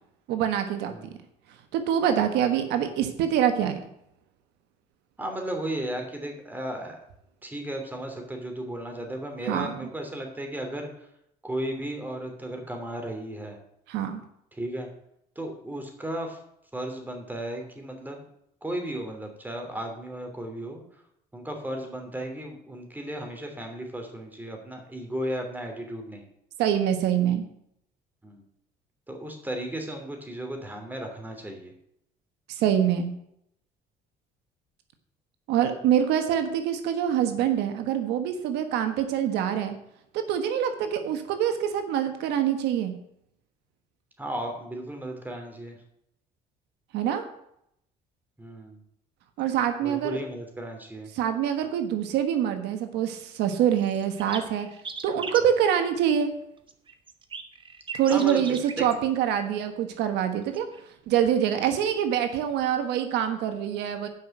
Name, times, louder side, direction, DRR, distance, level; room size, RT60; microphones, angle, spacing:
voice 1, 0.3-1.1 1.7-3.8 9.5-9.8 13.9-14.2 26.6-27.4 32.5-33.1 35.5-39.8 40.1-42.9 46.9-47.2 49.4-50.2 51.1-54.7 55.0-56.3 57.9-60.7 61.1-64.1, right 9 dB, 90° right, 7 dB, 1.4 m, -25 dB
voice 2, 5.2-7.0 7.4-11.1 11.4-13.6 14.5-14.9 15.3-16.4 16.7-18.2 18.6-20.8 21.3-26.2 28.2-28.4 29.1-31.7 44.2-45.8 48.4-48.8 49.8-51.1 58.1-58.9, right 1 dB, 10° right, 3 dB, 2.9 m, -35 dB
sound 1, 53.5-53.6 53.8-55.4 56.7-58.9 60.4-60.8, right 5 dB, 30° right, 1.1 m, -38 dB
9.6 x 6.0 x 7.8 m, 0.75 s
cardioid pair, 110°, 17 cm